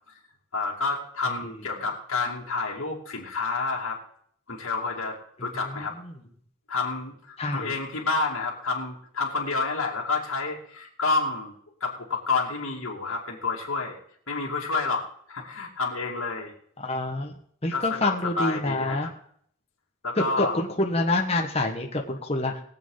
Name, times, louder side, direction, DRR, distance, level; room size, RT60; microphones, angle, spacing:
voice 1, 0.5-4.0 4.5-6.0 6.7-11.5 11.8-14.0 14.3-16.5 17.7-19.1 20.0-20.6, left 3 dB, 80° left, -3 dB, 2.6 m, -29 dB
voice 2, 5.4-6.1 7.4-7.8 16.8-17.3 17.6-19.1 20.4-22.6, left 2 dB, 30° left, 2 dB, 1.3 m, -27 dB
22.0 x 7.7 x 4.0 m, 0.62 s
head